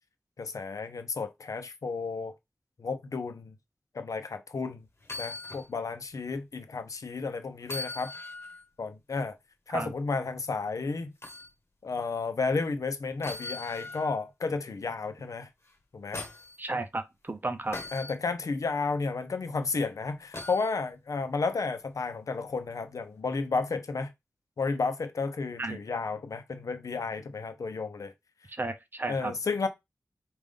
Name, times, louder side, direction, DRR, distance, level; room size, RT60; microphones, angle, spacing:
voice 1, 0.4-2.4 2.8-3.5 3.9-4.8 5.2-8.1 8.8-9.4 9.7-11.1 11.8-15.5 15.9-16.2 17.9-24.1 24.6-28.1 29.1-29.7, left 4 dB, 80° left, 0.7 m, -32 dB
sound 1, 5.0-5.7 6.1-6.2 7.6-8.6 11.2-11.5 13.2-14.2 15.6-16.6 17.7-18.1 20.3-20.7 22.5-22.6, left 3 dB, 50° left, 1.4 m, -40 dB
voice 2, 16.6-17.8 25.6-25.8 28.5-29.3, right 2 dB, 35° right, 0.6 m, -33 dB
5.1 x 2.6 x 3.6 m
wide cardioid pair, 70°, 6 cm